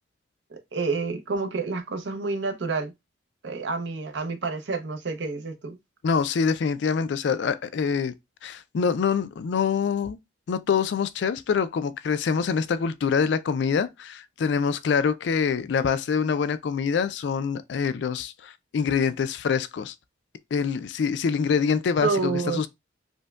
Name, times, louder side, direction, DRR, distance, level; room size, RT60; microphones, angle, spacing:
voice 1, 0.5-2.9 3.4-5.8 22.0-22.7, right 4 dB, 70° right, 0.6 m, -29 dB
voice 2, 6.0-8.1 8.4-10.2 10.5-19.9 20.5-22.7, left 6 dB, 65° left, 0.3 m, -25 dB
5.1 x 2.2 x 2.3 m
head